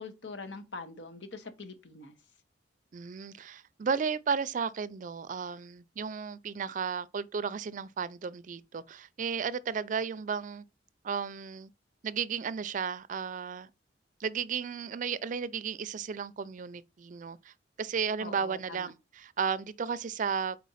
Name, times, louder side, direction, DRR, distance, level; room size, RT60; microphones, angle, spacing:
voice 1, 0.0-2.2 18.2-18.9, left 3 dB, 85° left, 1.1 m, -43 dB
voice 2, 2.9-10.6 11.0-11.7 12.0-13.7 14.2-17.5 17.8-20.6, right 6 dB, 45° right, 0.4 m, -34 dB
4.4 x 4.2 x 5.5 m
head